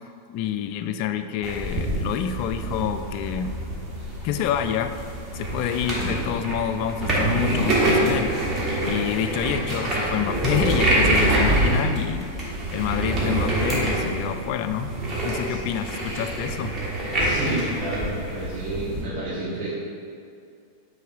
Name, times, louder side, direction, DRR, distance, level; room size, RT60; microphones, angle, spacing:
voice 1, 0.3-3.5 4.2-5.0 5.3-8.3 8.8-12.3 12.7-14.9 15.2-16.8, left 9 dB, 45° left, 9 dB, 0.3 m, -27 dB
sound 1, 1.4-19.0, right 1 dB, 20° right, 1.4 m, -25 dB
voice 2, 17.2-19.7, right 1 dB, 40° right, -10 dB, 1.4 m, -30 dB
8.4 x 3.7 x 3.6 m, 2.4 s
figure-of-eight pair, 90°, 0 cm